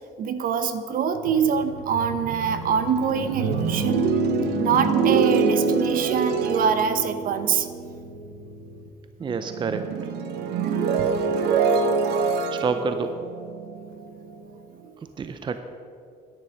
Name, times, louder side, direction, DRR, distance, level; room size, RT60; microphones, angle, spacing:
voice 1, 0.2-4.1 4.6-7.7 11.0-11.1 14.9-15.0, right 7 dB, 55° right, 10 dB, 0.8 m, -24 dB
sound 1, 1.2-8.9 9.2-14.3, right 5 dB, 80° right, 0.9 m, -25 dB
voice 2, 9.2-9.8 12.5-13.1 15.2-15.6, right 5 dB, 30° right, 9 dB, 0.6 m, -27 dB
9.8 x 9.7 x 5.1 m, 2.4 s
cardioid pair, 110°, 17 cm